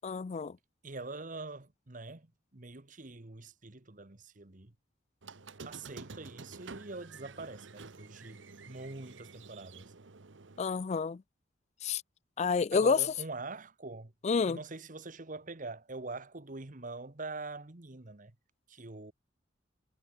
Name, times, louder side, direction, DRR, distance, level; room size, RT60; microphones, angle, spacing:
voice 1, 0.0-0.6 10.6-11.2 11.8-12.0 12.4-13.0 14.2-14.6, left 5 dB, 35° left, 0.3 m, -29 dB
voice 2, 0.8-4.7 5.6-9.9 12.7-14.1 14.5-18.3 18.7-19.1, right 3 dB, 45° right, 1.4 m, -44 dB
Squeak, 5.2-10.6, right 4 dB, 75° right, 1.1 m, -50 dB
head